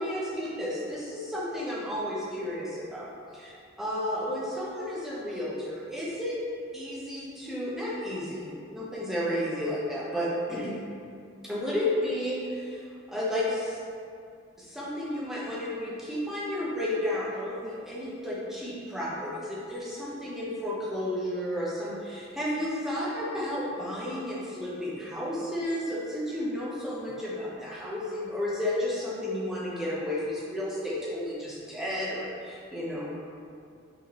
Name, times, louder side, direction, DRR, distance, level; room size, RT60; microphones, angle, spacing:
voice 1, 0.0-3.1 3.3-3.5 3.8-6.4 6.7-10.7 11.4-13.8 14.6-33.1, left 1 dB, ahead, -7 dB, 0.7 m, -32 dB
4.5 x 3.2 x 3.0 m, 2.5 s
head